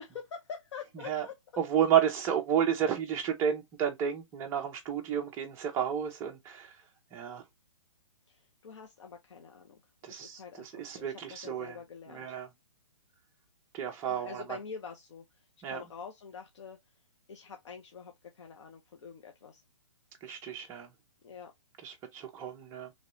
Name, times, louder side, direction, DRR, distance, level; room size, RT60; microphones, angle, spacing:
voice 1, 0.0-1.3 8.3-12.4 14.0-16.8 17.3-19.6 21.2-21.5, left 6 dB, 60° left, 0.7 m, -46 dB
voice 2, 1.6-7.4 10.0-11.8 12.1-12.5 13.7-14.6 15.6-15.8 20.2-20.9 21.8-22.9, right 9 dB, 15° right, 0.6 m, -31 dB
3.1 x 2.7 x 3.0 m
hypercardioid pair, 155°, 17 cm